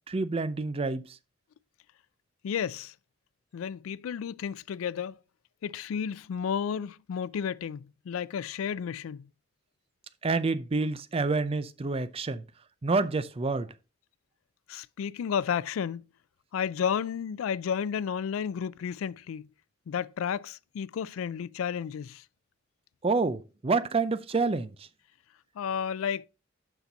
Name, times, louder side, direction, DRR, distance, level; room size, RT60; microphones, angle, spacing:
voice 1, 0.1-1.2 10.2-12.4 12.8-13.7 23.0-24.9, right 3 dB, 30° right, 0.4 m, -28 dB
voice 2, 2.4-2.9 3.5-5.2 5.6-9.3 14.7-16.1 16.5-19.5 19.9-22.2 25.6-26.3, left 7 dB, 85° left, 0.3 m, -32 dB
7.0 x 5.8 x 3.9 m
head